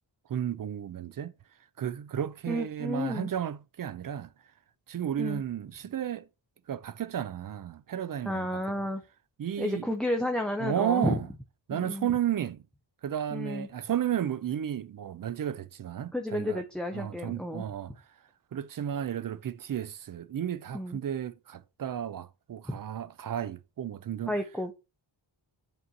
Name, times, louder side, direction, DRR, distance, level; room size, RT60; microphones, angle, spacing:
voice 1, 0.3-1.3 1.8-4.3 4.9-6.3 6.7-8.6 9.4-9.9 10.6-11.3 11.7-12.6 13.0-16.6 16.9-18.0 18.5-24.4, right 10 dB, 50° right, 0.4 m, -33 dB
voice 2, 2.5-3.3 5.2-5.4 8.3-9.0 9.6-11.2 11.7-12.1 13.3-13.7 16.1-17.6 20.7-21.0 22.7-22.8 24.3-24.7, left 1 dB, ahead, 0.5 m, -31 dB
7.8 x 3.0 x 3.9 m
wide cardioid pair, 120°, 45 cm